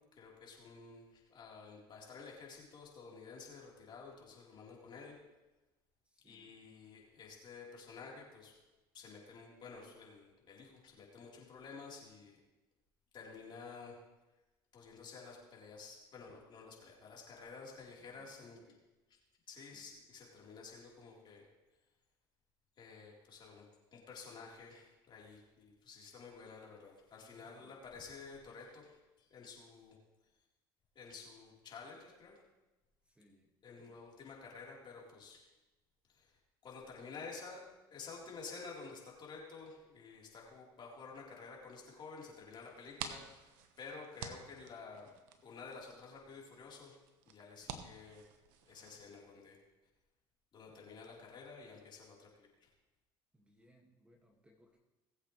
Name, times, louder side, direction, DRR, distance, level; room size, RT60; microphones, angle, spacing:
voice 1, 0.1-5.2 6.2-8.5 8.9-12.4 13.1-14.0 14.7-18.6 19.5-21.4 22.8-23.6 23.9-30.0 31.0-32.4 33.6-35.4 36.1-36.4 36.6-45.1 45.4-47.0 47.3-48.2 48.7-49.6 50.5-52.7, left 4 dB, 45° left, -3 dB, 4.0 m, -51 dB
voice 2, 6.0-6.5 18.0-18.8 19.6-19.9 27.2-27.8 33.0-33.5 33.8-34.0 50.7-51.3 53.3-54.8, equal, 10° right, 1 dB, 2.1 m, -67 dB
sound 1, 42.7-49.0, right 7 dB, 80° right, 1.1 m, -50 dB
20.0 x 8.0 x 3.3 m, 1.1 s
supercardioid pair, 80°, 11 cm